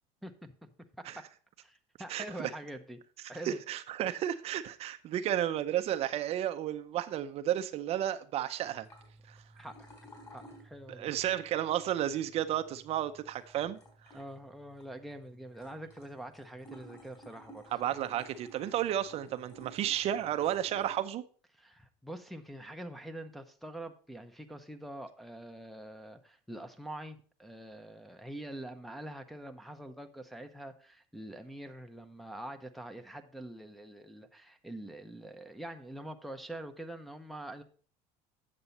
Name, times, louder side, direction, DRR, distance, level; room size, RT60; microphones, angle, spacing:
voice 1, 0.2-0.7 1.0-1.3 1.6-3.0 3.3-3.6 9.6-9.8 10.3-11.1 14.1-17.7 21.5-37.6, right 1 dB, ahead, 0.7 m, -45 dB
voice 2, 2.1-2.5 3.4-8.9 9.3-9.4 11.0-13.8 17.7-21.2, right 11 dB, 45° right, 0.6 m, -32 dB
sound 1, 8.7-21.0, right 1 dB, 25° left, 4.3 m, -56 dB
8.8 x 6.8 x 4.1 m
supercardioid pair, 125°, 14 cm